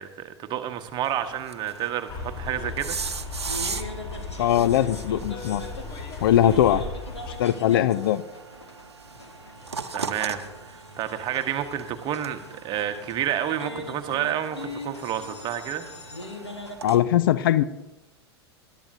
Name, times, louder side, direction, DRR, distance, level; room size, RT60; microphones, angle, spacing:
voice 1, 0.0-3.0 9.9-15.8, right 10 dB, 35° right, 8 dB, 1.2 m, -30 dB
sound 1, 1.0-17.0, right 5 dB, 80° right, 0.7 m, -39 dB
Bus, 2.1-7.4, left 3 dB, 30° left, 1.6 m, -36 dB
sound 2, 2.4-16.8, left 1 dB, 85° left, 1.7 m, -41 dB
voice 2, 4.4-5.6 6.2-6.8 7.4-8.2 16.8-17.6, left 11 dB, 55° left, 15 dB, 0.5 m, -20 dB
21.0 x 12.0 x 2.8 m, 1.0 s
figure-of-eight pair, 90°, 14 cm